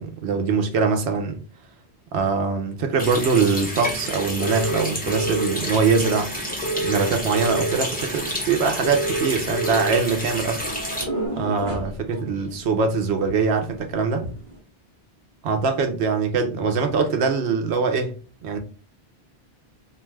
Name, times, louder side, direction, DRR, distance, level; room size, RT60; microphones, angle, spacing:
voice 1, 0.0-1.4 2.1-6.3 6.8-10.6 11.4-14.3 15.4-18.1 18.4-18.6, right 5 dB, 85° right, 0.9 m, -23 dB
Water tap faucet, 3.0-11.0, equal, 10° left, 0.6 m, -30 dB
sound 1, 4.4-5.5 6.6-7.8 8.8-10.0 11.1-11.3, right 2 dB, 70° left, 0.9 m, -27 dB
London Under Ground Train, 6.3-14.6, right 1 dB, 50° right, 1.0 m, -38 dB
2.5 x 2.3 x 3.1 m
omnidirectional pair, 1.1 m